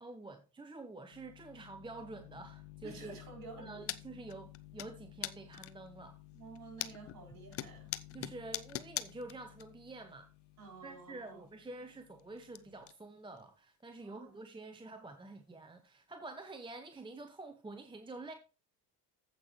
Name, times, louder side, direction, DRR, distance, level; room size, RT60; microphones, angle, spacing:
voice 1, 0.0-3.2 3.6-6.2 8.1-10.3 10.8-18.3, right 2 dB, 10° right, 0.9 m, -48 dB
sound 1, 1.1-12.9, left 17 dB, 55° left, 1.0 m, -56 dB
voice 2, 2.8-3.8 6.3-7.9 10.6-11.4 14.0-14.3, right 4 dB, 45° right, 4.9 m, -51 dB
sound 2, 3.9-4.0 4.3-4.9 5.2-5.9 6.4-7.2 7.5-9.6 9.9-10.0 11.3-11.4 11.6-12.6 12.8-12.9 13.4-13.5 13.9-14.0 14.6-14.7 15.8-15.9, left 12 dB, 30° left, 0.5 m, -41 dB
15.0 x 5.6 x 3.1 m
figure-of-eight pair, 50°, 48 cm